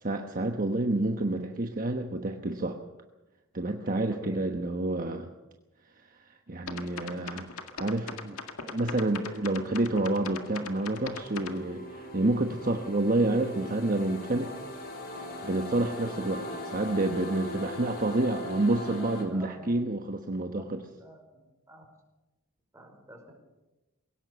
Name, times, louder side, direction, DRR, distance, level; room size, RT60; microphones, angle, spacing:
voice 1, 0.0-2.8 3.5-5.3 6.5-14.5 15.4-20.8, right 2 dB, 40° right, 4 dB, 1.2 m, -29 dB
voice 2, 3.8-4.4 16.0-16.2 19.3-19.8 20.6-20.7 21.0-21.2 21.7-21.9 22.7-23.3, right 1 dB, 15° right, 1 dB, 5.0 m, -49 dB
sound 1, 6.7-11.6, left 5 dB, 80° left, 1.9 m, -39 dB
sound 2, 8.5-19.2, left 1 dB, 45° left, 3.8 m, -41 dB
21.5 x 17.5 x 7.0 m, 1.1 s
head